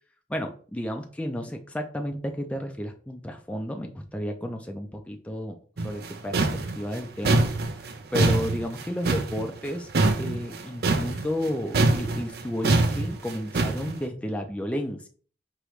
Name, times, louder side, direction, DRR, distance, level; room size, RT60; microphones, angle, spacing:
voice 1, 0.3-5.5 5.8-7.4 7.7-9.9 10.2-15.1, equal, 5° left, 3 dB, 0.4 m, -32 dB
sound 1, 5.8-11.5 11.7-13.9, right 2 dB, 60° right, 0.5 m, -24 dB
4.9 x 3.0 x 3.1 m, 0.43 s
head